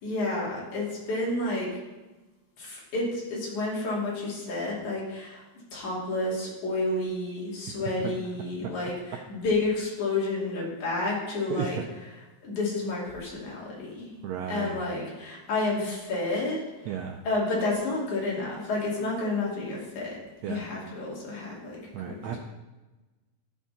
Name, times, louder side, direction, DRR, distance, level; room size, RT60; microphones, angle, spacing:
voice 1, 0.0-1.7 2.6-5.4 5.7-11.8 12.4-14.1 14.4-16.9 17.2-20.2 20.5-22.4, left 2 dB, 65° left, -5 dB, 4.1 m, -30 dB
voice 2, 11.5-11.9 14.2-14.8 16.8-17.2 20.4-20.6 21.9-22.4, right 9 dB, 85° right, 4 dB, 1.5 m, -33 dB
13.0 x 6.1 x 4.1 m, 1.1 s
omnidirectional pair, 3.7 m